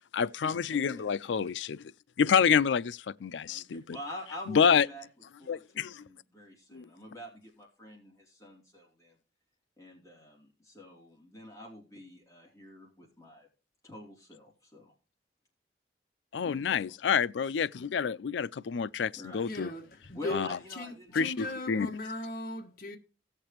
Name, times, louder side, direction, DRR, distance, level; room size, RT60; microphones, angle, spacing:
voice 1, 0.1-1.8 2.2-4.0 4.5-4.9 5.5-6.1 6.7-6.9 16.3-19.7 20.3-20.5 21.1-21.9, left 6 dB, 90° left, 0.4 m, -28 dB
voice 2, 0.7-1.3 3.5-5.1 5.4-9.2 9.8-13.5 13.8-14.9 16.4-17.0 19.1-19.5 20.1-21.7, left 1 dB, 20° left, 3.1 m, -47 dB
voice 3, 19.5-20.4 20.8-23.0, left 2 dB, 55° left, 1.5 m, -38 dB
17.0 x 6.7 x 3.0 m
head